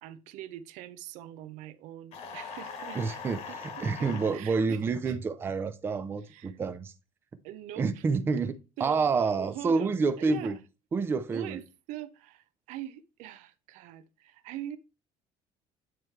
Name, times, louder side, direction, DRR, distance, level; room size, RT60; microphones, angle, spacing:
voice 1, 0.0-3.2 3.5-5.2 6.2-6.6 7.4-8.0 8.8-10.6 11.3-14.8, right 12 dB, 75° right, 0.6 m, -43 dB
sound 1, 2.1-4.4, left 5 dB, 55° left, 1.3 m, -41 dB
voice 2, 3.0-6.9 7.8-10.6 10.9-11.6, right 4 dB, 15° right, 0.4 m, -28 dB
9.3 x 3.2 x 4.5 m
cardioid pair, 170°, 13 cm